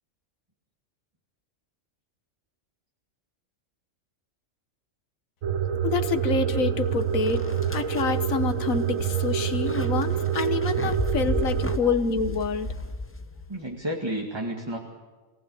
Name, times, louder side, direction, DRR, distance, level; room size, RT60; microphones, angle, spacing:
sound 1, 5.4-11.8, right 8 dB, 75° right, 1.4 m, -26 dB
voice 1, 5.8-7.4 7.7-12.7, left 5 dB, 85° left, 10 dB, 1.6 m, -27 dB
sound 2, 6.8-6.9 7.3-13.6, left 2 dB, 15° left, 0.6 m, -35 dB
voice 2, 7.2-7.9 8.8-9.3 10.1-11.1 11.6-12.1 13.5-14.8, right 1 dB, 20° right, 1 dB, 2.1 m, -36 dB
26.5 x 18.0 x 8.6 m, 1.3 s
omnidirectional pair, 1.4 m